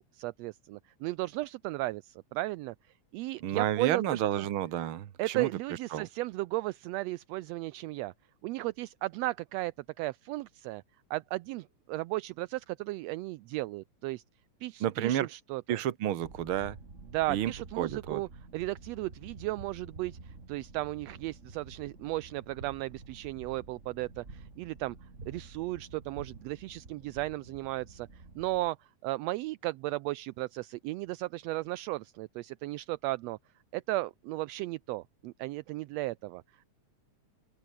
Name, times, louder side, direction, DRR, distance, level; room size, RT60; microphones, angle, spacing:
voice 1, 0.1-2.7 3.1-4.4 5.2-8.1 8.4-10.8 11.1-14.2 14.6-15.8 17.1-25.0 25.3-33.4 33.7-36.4, right 19 dB, 80° right, 1.5 m, -35 dB
voice 2, 3.4-5.5 5.9-6.1 14.8-15.3 15.7-16.8 17.3-18.2, right 11 dB, 55° right, 1.7 m, -31 dB
sound 1, 16.2-28.7, right 3 dB, 25° right, 3.5 m, -50 dB
omnidirectional pair, 3.4 m